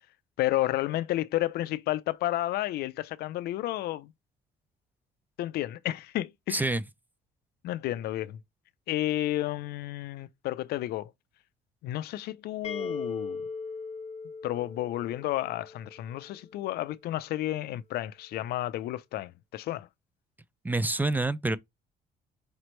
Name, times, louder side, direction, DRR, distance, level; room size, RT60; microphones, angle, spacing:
voice 1, 0.4-4.1 5.4-6.7 7.6-8.4 8.9-11.1 11.8-13.4 14.4-19.9, left 15 dB, 70° left, 0.5 m, -31 dB
voice 2, 6.5-6.8 20.6-21.6, right 2 dB, 10° right, 0.4 m, -27 dB
sound 1, 12.6-16.4, left 4 dB, 40° left, 0.9 m, -39 dB
5.1 x 3.0 x 3.1 m
cardioid pair, 110°, 17 cm